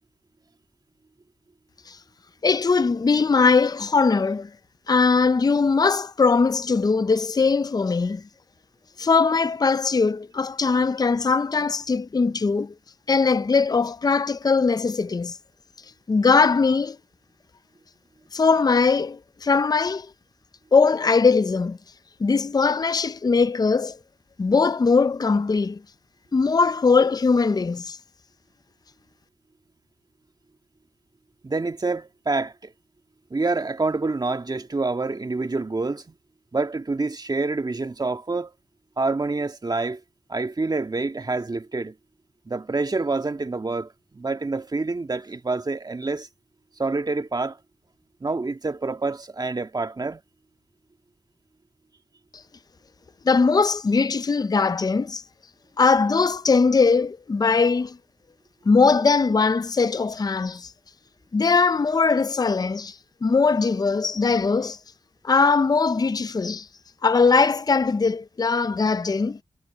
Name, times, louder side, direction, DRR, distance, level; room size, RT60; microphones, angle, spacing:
voice 1, 2.4-4.5 4.9-8.2 9.0-12.7 13.1-15.4 16.1-17.0 18.3-20.1 20.7-21.8 22.2-24.0 24.4-25.8 26.3-28.0 53.2-55.2 55.8-58.0 58.7-60.7 61.3-64.8 65.2-66.7 67.0-69.4, left 4 dB, 40° left, 0.6 m, -20 dB
voice 2, 31.4-32.7 33.3-36.1 36.5-38.5 39.0-40.0 40.3-42.0 42.5-46.3 46.8-47.6 48.2-50.2, right 3 dB, 40° right, 1.9 m, -27 dB
cardioid pair, 45°, 11 cm